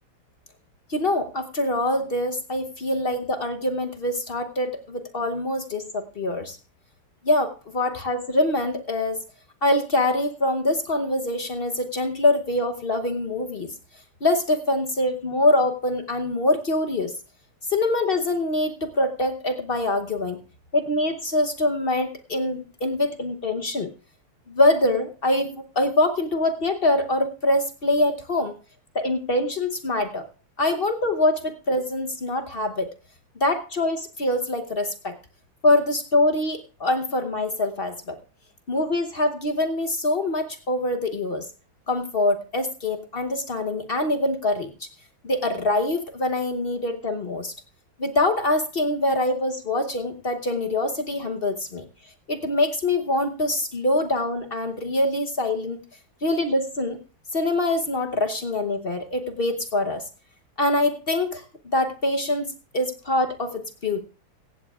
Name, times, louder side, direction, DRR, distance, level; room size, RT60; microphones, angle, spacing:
voice 1, 0.9-6.6 7.2-9.2 9.6-13.8 14.2-17.2 17.7-20.4 20.7-23.9 24.5-28.6 28.9-30.3 30.6-32.9 33.4-35.2 35.6-38.2 38.7-41.5 41.9-44.9 45.2-47.5 48.0-51.9 52.3-55.8 56.2-57.0 57.3-60.0 60.6-64.0, left 2 dB, 55° left, 5 dB, 0.6 m, -24 dB
16.5 x 15.5 x 2.4 m, 0.35 s
omnidirectional pair, 2.4 m